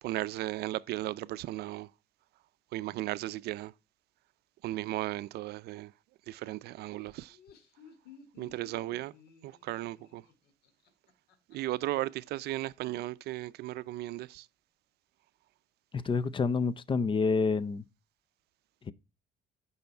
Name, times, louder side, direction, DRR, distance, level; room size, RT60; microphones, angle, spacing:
voice 1, 0.0-1.9 2.7-3.7 4.6-5.9 6.3-7.4 8.4-9.1 9.4-10.2 11.5-14.5, right 16 dB, 75° right, 0.5 m, -36 dB
Laughter, 7.2-11.8, left 6 dB, 75° left, 2.1 m, -57 dB
voice 2, 15.9-17.8 18.9-19.0, left 4 dB, 30° left, 0.6 m, -28 dB
9.3 x 5.6 x 4.4 m
cardioid pair, 110°, 17 cm